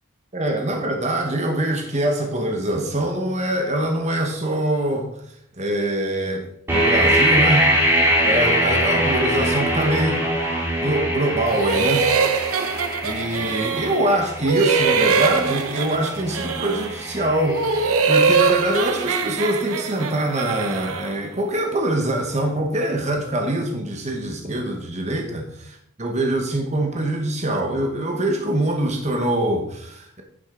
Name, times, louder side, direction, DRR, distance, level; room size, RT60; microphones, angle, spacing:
voice 1, 0.3-5.1 5.6-7.7 8.2-10.3 10.8-12.1 12.7-30.2, right 1 dB, 30° right, 1.1 m, -24 dB
sound 1, 6.7-18.5, equal, 10° right, 2.1 m, -23 dB
sound 2, 11.5-14.1 14.4-17.0 17.4-21.2, right 5 dB, 75° right, 0.7 m, -22 dB
9.2 x 7.4 x 3.8 m
head